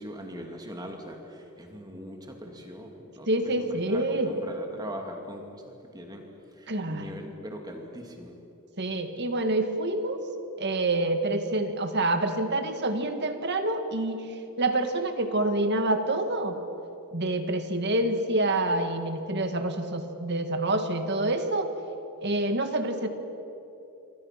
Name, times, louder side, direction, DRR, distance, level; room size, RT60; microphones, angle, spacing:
voice 1, 0.0-8.4, equal, 15° right, 3 dB, 2.6 m, -41 dB
voice 2, 3.3-4.3 6.7-7.1 8.8-10.2 10.6-14.3 14.6-16.6 17.1-21.7 22.2-23.1, right 2 dB, 50° right, 7 dB, 1.9 m, -27 dB
27.5 x 24.0 x 5.9 m, 2.9 s
head